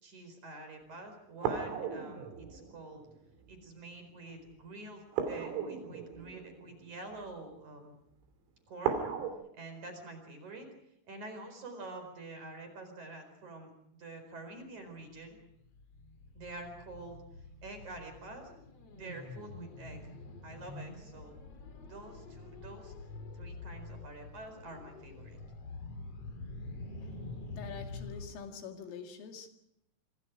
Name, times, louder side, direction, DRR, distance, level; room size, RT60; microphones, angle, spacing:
voice 1, 0.0-3.0 3.5-8.0 8.7-9.0 9.5-10.7 11.1-15.4 16.3-17.2 17.6-18.5 18.9-20.0 20.4-21.4 21.9-23.1 23.3-25.4, right 2 dB, 35° right, 5.5 m, -47 dB
sound 1, 1.4-3.6 5.1-7.4 8.8-9.3, right 7 dB, 85° right, 5.8 m, -36 dB
sound 2, 15.3-28.3, left 3 dB, 45° left, 2.4 m, -46 dB
voice 2, 27.6-29.5, left 6 dB, 75° left, 4.7 m, -45 dB
26.5 x 26.5 x 5.0 m
omnidirectional pair, 6.0 m